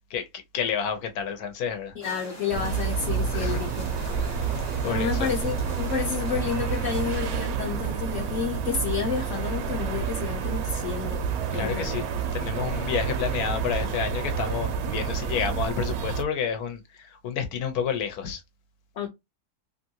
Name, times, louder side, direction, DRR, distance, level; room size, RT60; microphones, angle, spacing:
voice 1, 0.5-1.9 3.3-3.6 4.8-5.3 11.6-12.0 12.3-16.8 17.2-18.4, left 7 dB, 80° left, 1.2 m, -29 dB
voice 2, 1.9-3.9 4.8-11.2 11.5-12.1 12.4-12.5 19.0-19.1, left 6 dB, 60° left, 1.0 m, -30 dB
sound 1, 2.0-7.4, left 1 dB, 15° left, 0.6 m, -43 dB
sound 2, 2.5-16.2, right 6 dB, 75° right, 1.0 m, -29 dB
3.0 x 2.6 x 2.7 m
omnidirectional pair, 1.6 m